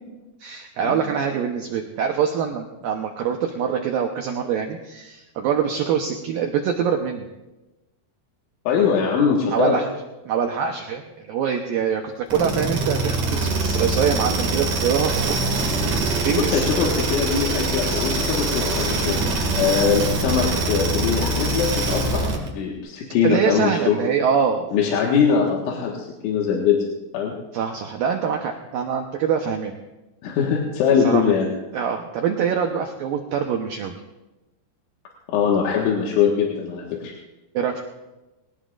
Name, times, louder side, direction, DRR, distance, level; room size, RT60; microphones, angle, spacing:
voice 1, 0.4-7.3 9.5-9.9 10.3-15.4 16.2-16.6 23.2-24.9 27.5-29.7 31.0-31.4 31.7-34.0 37.5-37.8, right 7 dB, 85° right, 3 dB, 2.0 m, -24 dB
voice 2, 8.7-9.8 16.4-19.2 19.5-24.0 24.7-26.8 27.1-27.3 30.2-31.5 35.3-37.1, left 6 dB, 80° left, -2 dB, 4.0 m, -22 dB
sound 1, 12.3-22.5, right 2 dB, 50° right, 3.1 m, -23 dB
22.0 x 18.5 x 2.5 m, 1.0 s
omnidirectional pair, 5.4 m